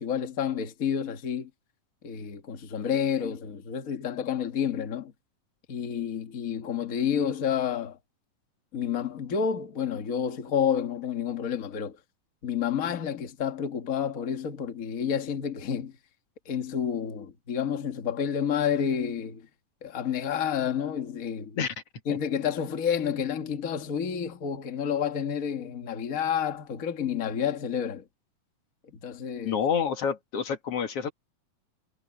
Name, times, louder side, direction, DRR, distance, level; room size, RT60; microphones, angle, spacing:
voice 1, 0.0-1.5 2.0-5.1 5.7-8.0 8.7-12.0 12.4-15.9 16.4-19.4 19.8-21.6 22.1-28.0 29.0-29.6, left 8 dB, 85° left, 0.7 m, -29 dB
voice 2, 29.4-31.1, left 7 dB, 50° left, 2.3 m, -28 dB
omnidirectional pair, 4.2 m